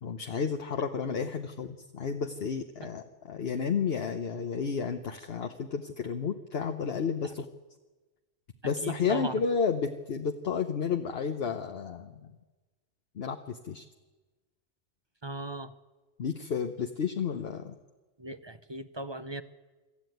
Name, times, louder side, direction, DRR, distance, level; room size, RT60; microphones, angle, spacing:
voice 1, 0.0-7.5 8.6-12.3 13.2-13.8 16.2-17.8, left 6 dB, 60° left, 6 dB, 1.1 m, -32 dB
voice 2, 8.6-9.3 15.2-15.7 18.2-19.4, right 2 dB, 30° right, 12 dB, 0.6 m, -38 dB
25.0 x 13.5 x 9.3 m, 1.2 s
omnidirectional pair, 1.2 m